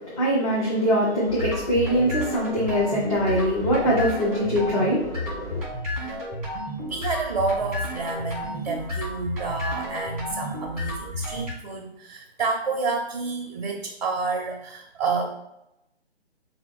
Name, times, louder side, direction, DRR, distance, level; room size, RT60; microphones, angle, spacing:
voice 1, 0.0-5.6, equal, 30° left, -6 dB, 1.0 m, -23 dB
sound 1, 1.3-11.5, left 1 dB, ahead, 1.3 m, -32 dB
voice 2, 6.9-15.4, right 4 dB, 40° right, 4 dB, 0.5 m, -29 dB
5.4 x 2.4 x 3.5 m, 0.86 s
figure-of-eight pair, 145°, 33 cm